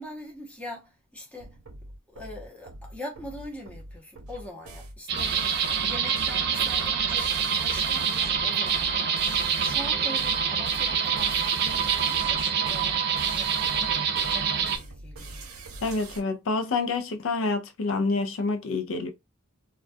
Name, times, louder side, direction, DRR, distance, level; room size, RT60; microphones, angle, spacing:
voice 1, 0.0-1.6 2.1-9.1 9.6-13.0 13.4-15.4, left 1 dB, 5° left, 0.7 m, -42 dB
sound 1, 1.4-16.2, right 2 dB, 90° right, 0.7 m, -43 dB
sound 2, 5.1-14.8, right 7 dB, 50° right, 0.4 m, -26 dB
voice 2, 15.8-19.1, left 3 dB, 65° left, 0.4 m, -27 dB
2.3 x 2.2 x 2.5 m
head